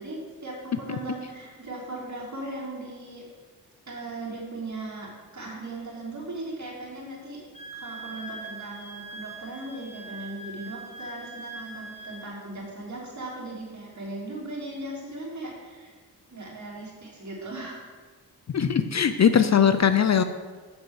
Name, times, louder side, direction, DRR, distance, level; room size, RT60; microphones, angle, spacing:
voice 1, 0.0-3.3 3.9-7.5 7.7-15.9 16.3-17.9 19.0-19.1, right 2 dB, 45° right, -4 dB, 3.3 m, -38 dB
Wind instrument woodwind instrument, 7.5-12.3, right 2 dB, 15° left, 1.3 m, -42 dB
voice 2, 18.5-20.2, left 8 dB, 45° left, 10 dB, 0.5 m, -20 dB
7.3 x 6.1 x 7.2 m, 1.5 s
wide cardioid pair, 95°, 40 cm